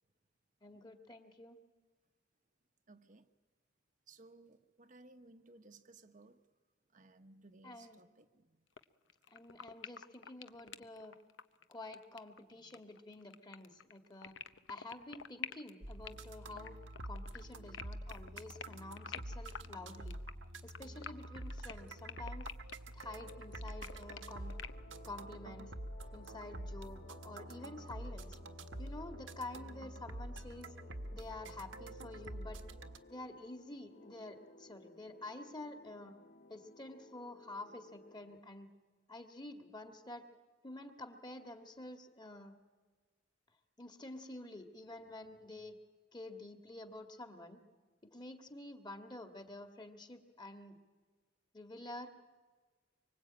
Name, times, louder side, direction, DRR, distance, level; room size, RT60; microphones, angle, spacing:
voice 1, 0.6-1.6 7.6-8.0 9.3-11.1 11.7-14.3 14.7-16.8 17.0-20.2 20.6-22.5 22.9-24.5 25.0-25.7 26.1-28.4 28.8-30.7 31.1-32.6 33.1-36.1 36.5-38.7 39.1-40.2 40.6-42.6 43.8-45.7 46.1-47.6 48.1-50.8 51.5-52.1, left 2 dB, 20° left, 6 dB, 2.0 m, -49 dB
voice 2, 2.9-3.3 4.1-6.4 6.9-8.6 12.6-12.8, right 2 dB, 40° right, 7 dB, 1.0 m, -60 dB
sound 1, 8.8-8.9 9.1-24.8, left 7 dB, 70° left, 1.0 m, -48 dB
sound 2, 15.8-33.0, right 1 dB, 80° right, 1.5 m, -47 dB
sound 3, 23.0-38.4, left 2 dB, 45° left, 0.8 m, -59 dB
25.5 x 24.0 x 8.8 m, 1.4 s
head